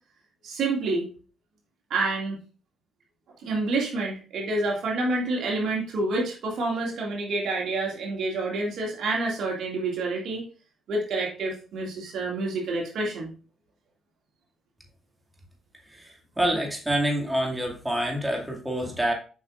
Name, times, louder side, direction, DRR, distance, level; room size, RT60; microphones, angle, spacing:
voice 1, 0.4-1.1 1.9-2.4 3.4-10.4 10.9-13.3, right 2 dB, 75° right, -1 dB, 2.2 m, -28 dB
voice 2, 15.9-19.1, right 1 dB, 10° right, 0 dB, 2.2 m, -27 dB
7.6 x 5.5 x 2.5 m, 0.36 s
supercardioid pair, 65°, 0 cm